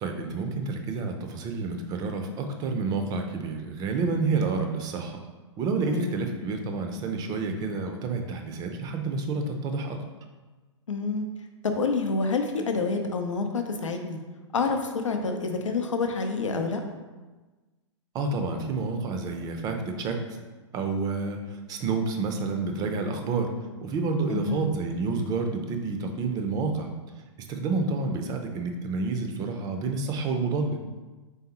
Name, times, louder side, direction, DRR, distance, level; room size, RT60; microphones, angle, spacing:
voice 1, 0.0-5.1 5.6-10.0 18.1-20.2 20.7-21.4 21.7-23.5 23.8-26.9 27.5-30.8, right 4 dB, 25° right, 5 dB, 0.5 m, -29 dB
voice 2, 5.9-6.2 10.9-11.2 11.6-14.2 14.5-16.8 24.3-24.7, left 4 dB, 80° left, 5 dB, 0.5 m, -28 dB
4.0 x 3.3 x 2.9 m, 1.2 s
figure-of-eight pair, 115°, 16 cm